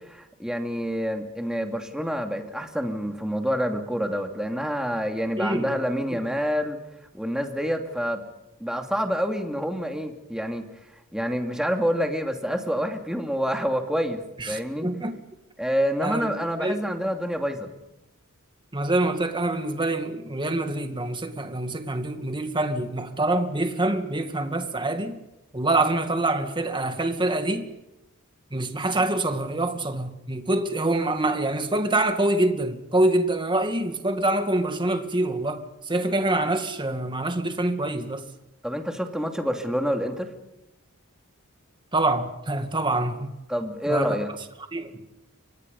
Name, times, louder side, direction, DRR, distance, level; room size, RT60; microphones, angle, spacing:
voice 1, 0.1-6.8 7.1-8.2 8.6-10.7 11.1-14.9 15.6-17.7 38.6-40.3 43.5-44.3, equal, 5° right, 2.6 m, -27 dB
voice 2, 5.4-5.7 6.1-6.2 14.4-15.2 16.0-16.3 16.6-16.8 18.7-25.2 25.5-27.7 28.5-38.3 41.9-43.3 43.9-44.2 44.7-45.0, right 2 dB, 20° right, 2.2 m, -25 dB
29.5 x 24.5 x 5.5 m
head